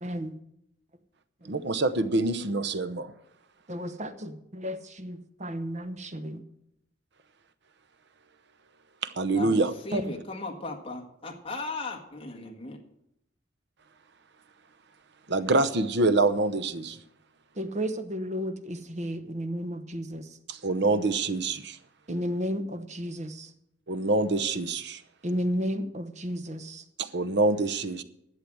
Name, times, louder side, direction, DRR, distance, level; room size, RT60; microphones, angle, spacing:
voice 1, 0.0-0.4 1.4-1.6 3.7-6.4 9.9-10.0 17.5-20.4 22.1-23.5 25.2-26.8, equal, 35° right, 9 dB, 1.0 m, -33 dB
voice 2, 1.5-3.1 9.0-9.7 15.3-17.0 20.5-21.8 23.9-25.0 27.0-28.0, right 2 dB, 60° right, 11 dB, 0.8 m, -26 dB
voice 3, 9.3-12.8, left 2 dB, 30° left, 0 dB, 1.6 m, -37 dB
11.5 x 7.6 x 7.8 m, 0.78 s
head